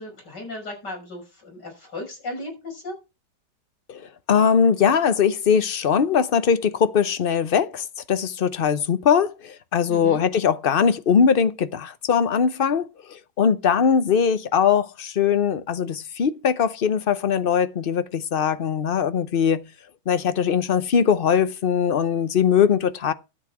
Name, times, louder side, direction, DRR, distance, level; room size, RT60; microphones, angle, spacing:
voice 1, 0.0-2.9 9.9-10.2, left 2 dB, 70° left, 6.7 m, -35 dB
voice 2, 4.3-19.6 20.1-23.1, left 7 dB, 50° left, 0.7 m, -21 dB
12.5 x 8.1 x 4.8 m
omnidirectional pair, 1.9 m